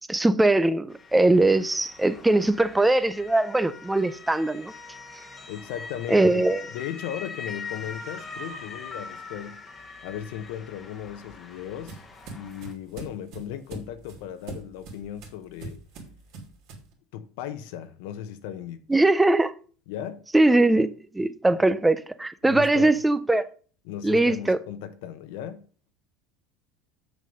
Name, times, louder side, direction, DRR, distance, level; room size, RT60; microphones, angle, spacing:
voice 1, 0.1-4.7 6.1-6.7 18.9-19.5 20.3-23.5 24.0-24.6, right 2 dB, 5° right, 0.4 m, -21 dB
Motor vehicle (road) / Siren, 0.9-12.7, left 4 dB, 15° left, 1.1 m, -42 dB
voice 2, 5.5-9.6 10.0-12.0 12.3-15.8 17.1-18.8 19.9-20.3 22.4-23.0 23.8-25.6, left 10 dB, 70° left, 0.9 m, -36 dB
sound 1, 10.9-16.9, right 3 dB, 50° right, 2.5 m, -43 dB
7.5 x 6.5 x 5.3 m
cardioid pair, 170°, 0 cm